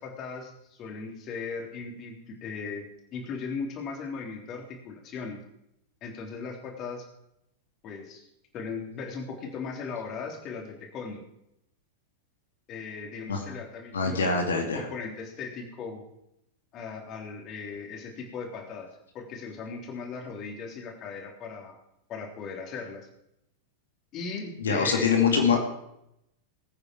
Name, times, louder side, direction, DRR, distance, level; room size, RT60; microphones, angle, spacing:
voice 1, 0.0-5.4 6.0-7.0 7.8-8.2 8.5-11.2 12.7-16.0 16.7-18.9 19.1-21.7 22.1-23.1 24.1-25.2, left 5 dB, 35° left, 1 dB, 3.4 m, -38 dB
voice 2, 13.9-14.8 24.6-25.7, left 5 dB, 65° left, 3 dB, 2.4 m, -24 dB
21.0 x 8.9 x 4.5 m, 0.80 s
figure-of-eight pair, 90°, 0 cm